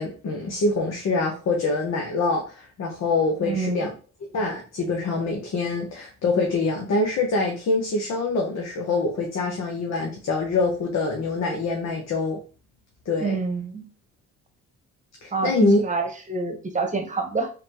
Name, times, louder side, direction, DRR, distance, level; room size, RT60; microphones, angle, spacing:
voice 1, 0.0-3.9 4.3-12.4 13.1-13.4 15.2-15.8, left 3 dB, 60° left, 1 dB, 1.0 m, -25 dB
voice 2, 3.4-3.8 13.2-13.9 15.3-17.5, right 4 dB, 25° right, 4 dB, 1.0 m, -27 dB
4.0 x 3.3 x 3.0 m, 0.37 s
cardioid pair, 90°, 30 cm